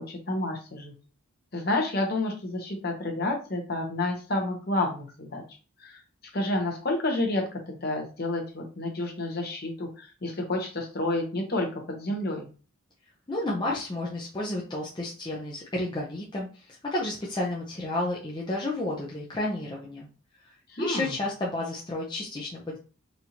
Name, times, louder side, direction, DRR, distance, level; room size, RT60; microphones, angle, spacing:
voice 1, 0.1-0.9 1.5-5.4 5.8-6.0 6.3-12.5 20.7-21.1, left 2 dB, 45° left, 2 dB, 0.9 m, -30 dB
voice 2, 13.3-20.1 20.4-22.8, left 2 dB, 20° left, -4 dB, 0.5 m, -31 dB
4.2 x 2.5 x 2.9 m, 0.36 s
head